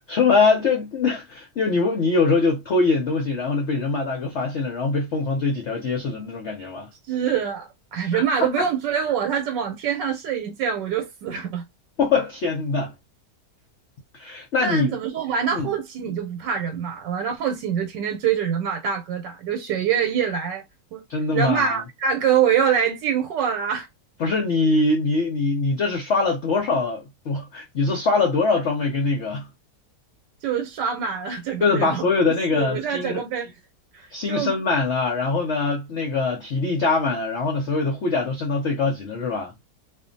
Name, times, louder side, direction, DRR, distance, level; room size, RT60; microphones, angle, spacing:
voice 1, 0.1-6.9 8.1-8.2 8.6-8.7 12.0-12.9 14.1-15.0 15.5-15.7 21.1-21.8 24.2-29.5 31.6-33.2 34.1-39.5, left 3 dB, 60° left, 0.8 m, -23 dB
voice 2, 7.1-11.6 14.6-20.6 20.9-21.0 21.3-23.9 30.4-32.1 32.5-33.5 33.9-34.5, right 8 dB, 85° right, 1.3 m, -25 dB
2.7 x 2.4 x 2.5 m
omnidirectional pair, 1.9 m